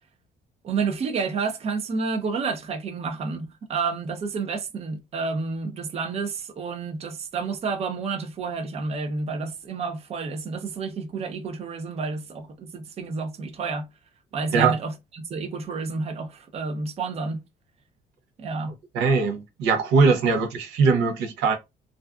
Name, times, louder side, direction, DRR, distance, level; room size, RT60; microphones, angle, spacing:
voice 1, 0.6-13.9 14.3-17.4 18.4-18.7, right 4 dB, 40° right, 0.6 m, -30 dB
voice 2, 18.9-21.5, right 4 dB, 90° right, 0.6 m, -21 dB
2.4 x 2.3 x 2.3 m
cardioid pair, 110°, 17 cm